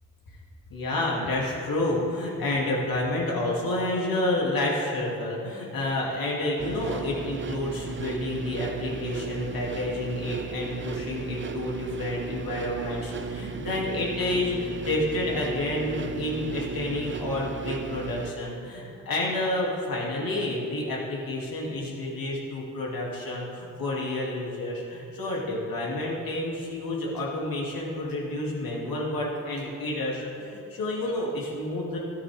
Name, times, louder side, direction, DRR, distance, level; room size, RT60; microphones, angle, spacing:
voice 1, 0.7-32.0, left 1 dB, 75° left, -4 dB, 2.5 m, -29 dB
sound 1, 6.6-18.3, right 6 dB, 35° right, 0.6 m, -35 dB
13.5 x 9.3 x 3.5 m, 2.7 s
supercardioid pair, 50°, 35 cm